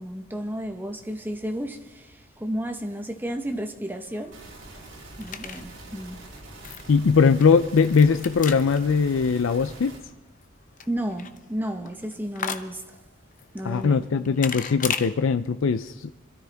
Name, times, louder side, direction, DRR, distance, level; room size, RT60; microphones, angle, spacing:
voice 1, 0.0-4.3 5.2-6.2 10.9-12.8 13.5-14.0, equal, 10° right, 1.0 m, -32 dB
sound 1, 3.9-15.1, left 7 dB, 40° left, 0.7 m, -38 dB
sound 2, 4.3-10.0, right 2 dB, 65° right, 3.7 m, -44 dB
voice 2, 6.9-10.0 13.6-16.1, left 5 dB, 70° left, 0.5 m, -20 dB
26.0 x 13.0 x 3.5 m
head